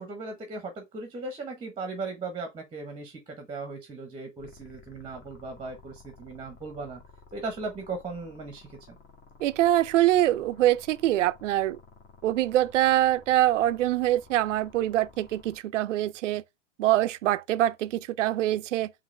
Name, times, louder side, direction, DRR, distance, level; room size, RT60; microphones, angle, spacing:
voice 1, 0.0-7.0 7.3-9.0, right 3 dB, 15° right, 0.9 m, -37 dB
sound 1, 4.4-15.6, left 4 dB, 30° left, 1.4 m, -53 dB
voice 2, 9.4-11.8 12.2-16.4 16.8-18.9, right 14 dB, 75° right, 0.5 m, -24 dB
4.9 x 2.9 x 3.2 m
hypercardioid pair, 105°, 37 cm